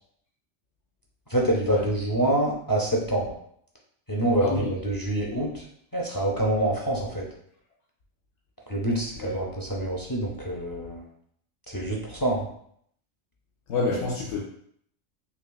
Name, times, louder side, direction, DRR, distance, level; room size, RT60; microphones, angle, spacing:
voice 1, 1.3-3.3 4.1-5.6 5.9-7.3 8.7-11.0 11.7-12.5, right 1 dB, 35° left, -2 dB, 0.3 m, -26 dB
voice 2, 4.4-4.7 9.2-9.3 13.7-14.4, left 3 dB, 85° left, -3 dB, 0.9 m, -27 dB
5.6 x 2.3 x 2.2 m, 0.66 s
omnidirectional pair, 1.2 m